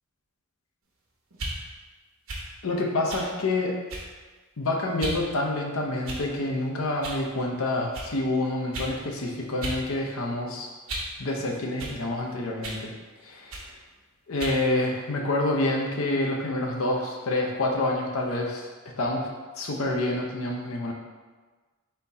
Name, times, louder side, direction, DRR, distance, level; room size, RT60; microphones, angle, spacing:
sound 1, 1.3-1.6 2.3-2.5 3.1-3.3 3.9-4.2 5.0-5.2 6.0-6.4 7.0-7.2 7.9-8.1 8.7-8.9 9.6-9.8 10.2-11.2 11.8-12.0 12.6-12.8 13.5-13.7 14.4-14.6, right 2 dB, 75° right, 0.9 m, -35 dB
voice 1, 2.6-3.8 4.6-10.7 11.2-12.9 13.2-13.7 14.3-18.7 19.0-19.3 19.6-20.9, left 2 dB, 80° left, 0 dB, 0.7 m, -27 dB
4.3 x 2.7 x 4.1 m, 1.3 s
head